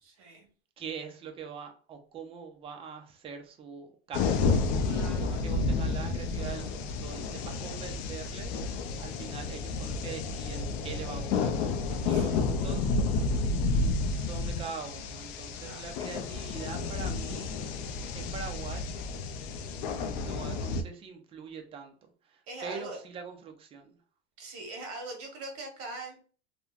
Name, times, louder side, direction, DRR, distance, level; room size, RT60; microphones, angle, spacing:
voice 1, 0.0-0.5 4.8-5.3 12.0-12.2 13.4-13.7 15.6-15.8 22.5-23.0 24.4-26.2, right 2 dB, 45° right, 2 dB, 1.2 m, -42 dB
voice 2, 0.8-4.4 4.7-13.0 13.6-17.5 18.1-18.9 20.1-21.9 22.2-24.0, right 6 dB, 20° right, 4 dB, 0.4 m, -43 dB
sound 1, 4.1-20.8, left 3 dB, 55° left, 0.4 m, -31 dB
3.0 x 2.1 x 2.3 m, 0.40 s
supercardioid pair, 135°, 33 cm